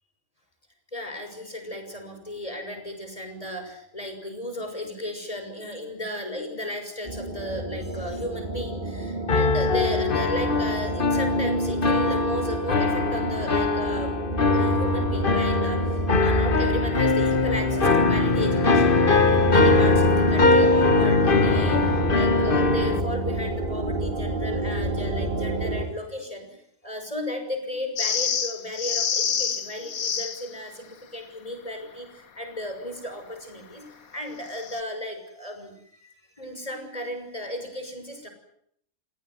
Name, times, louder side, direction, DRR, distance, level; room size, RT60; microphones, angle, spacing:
voice 1, 0.9-14.1 14.5-35.7 36.4-38.3, left 1 dB, 25° left, 5 dB, 6.6 m, -35 dB
sound 1, 7.0-25.9, right 1 dB, 35° right, 3.5 m, -29 dB
sound 2, 9.3-23.0, left 3 dB, 40° left, 1.4 m, -21 dB
sound 3, 28.0-30.5 34.5-34.8, left 7 dB, 85° left, 1.7 m, -27 dB
29.5 x 17.5 x 9.5 m, 0.72 s
omnidirectional pair, 1.5 m